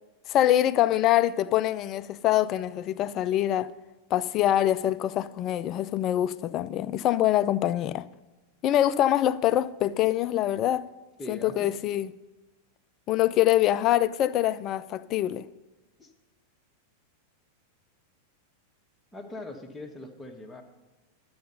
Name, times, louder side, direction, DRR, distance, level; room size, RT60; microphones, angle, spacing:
voice 1, 0.3-3.7 4.1-8.0 8.6-10.9 11.3-12.1 13.1-15.5, left 12 dB, 35° left, 0.4 m, -24 dB
voice 2, 11.2-11.7 16.0-16.1 19.1-20.6, left 2 dB, 10° left, 1.4 m, -41 dB
12.0 x 7.9 x 5.5 m
figure-of-eight pair, 90°, 0 cm